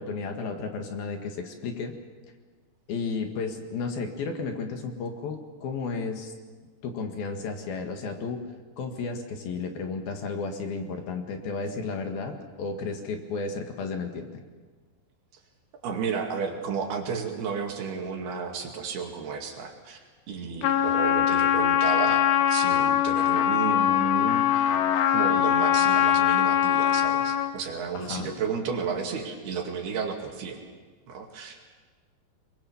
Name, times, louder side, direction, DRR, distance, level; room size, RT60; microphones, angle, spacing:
voice 1, 0.0-1.9 2.9-6.3 6.8-8.4 8.8-14.4 27.9-28.3, left 4 dB, 65° left, 4 dB, 3.4 m, -33 dB
voice 2, 15.8-20.0 20.3-24.8 25.1-30.6 31.1-31.6, right 6 dB, 65° right, 2 dB, 4.1 m, -32 dB
Trumpet, 20.6-27.6, left 10 dB, 90° left, 3.4 m, -22 dB
24.0 x 22.5 x 7.1 m, 1.5 s
omnidirectional pair, 4.9 m